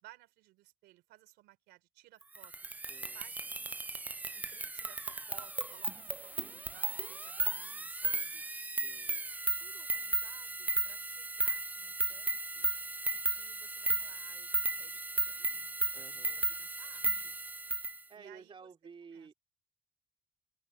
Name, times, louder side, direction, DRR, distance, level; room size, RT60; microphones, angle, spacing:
voice 1, 0.0-2.6 3.1-3.8 4.3-8.4 9.6-12.7 13.1-17.4 18.2-18.7 19.1-19.3, right 17 dB, 85° right, 3.8 m, -60 dB
sound 1, 2.3-18.0, right 2 dB, 10° right, 0.3 m, -35 dB
voice 2, 2.9-3.2 8.8-9.2 15.9-16.5 18.1-19.3, right 5 dB, 30° right, 3.5 m, -53 dB
open air
cardioid pair, 110°, 17 cm